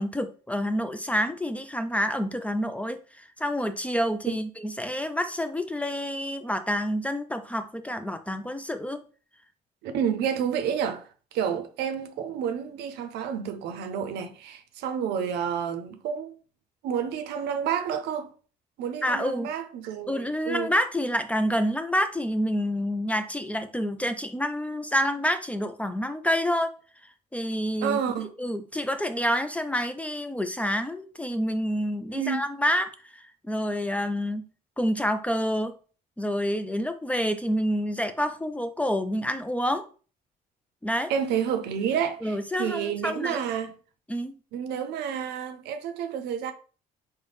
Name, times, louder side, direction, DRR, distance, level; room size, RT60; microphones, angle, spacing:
voice 1, 0.0-9.0 19.0-19.5 20.1-26.7 27.3-28.0 28.4-34.4 34.8-35.7 36.2-39.8 40.8-41.1 42.2-43.4 44.1-44.3, equal, 10° left, 0.3 m, -28 dB
voice 2, 9.8-16.4 16.8-18.3 18.8-20.7 27.8-28.3 32.1-32.4 41.1-43.7 44.5-46.5, right 8 dB, 80° right, 0.6 m, -30 dB
3.9 x 2.2 x 3.3 m
cardioid pair, 110°, 17 cm